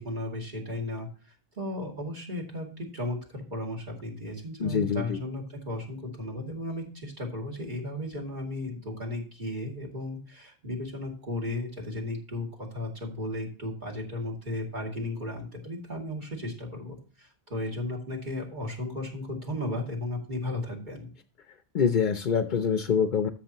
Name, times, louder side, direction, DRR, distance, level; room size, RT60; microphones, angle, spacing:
voice 1, 0.0-21.1, left 1 dB, 45° right, -1 dB, 2.6 m, -35 dB
voice 2, 4.6-5.2 21.7-23.3, left 6 dB, 50° left, 8 dB, 0.7 m, -25 dB
13.5 x 6.4 x 3.0 m, 0.39 s
omnidirectional pair, 1.1 m